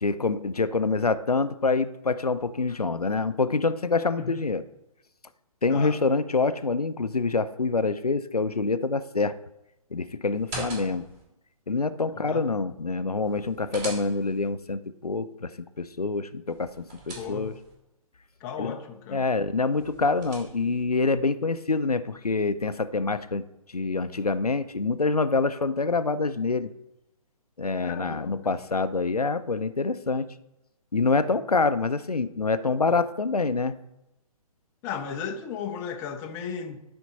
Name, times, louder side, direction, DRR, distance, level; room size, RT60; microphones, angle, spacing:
voice 1, 0.0-4.6 5.6-9.3 9.9-11.1 11.7-17.5 18.6-18.7 19.1-23.4 23.7-26.7 27.6-30.3 30.9-33.8, left 3 dB, 85° left, 0.5 m, -26 dB
sound 1, 10.3-11.2 13.2-14.5 16.5-17.7 19.7-20.8, right 1 dB, 25° right, 2.7 m, -41 dB
voice 2, 12.1-12.4 17.2-17.5 18.4-19.2 27.8-28.4 34.8-36.9, left 7 dB, 15° left, 0.5 m, -35 dB
13.0 x 4.4 x 4.1 m
figure-of-eight pair, 130°, 19 cm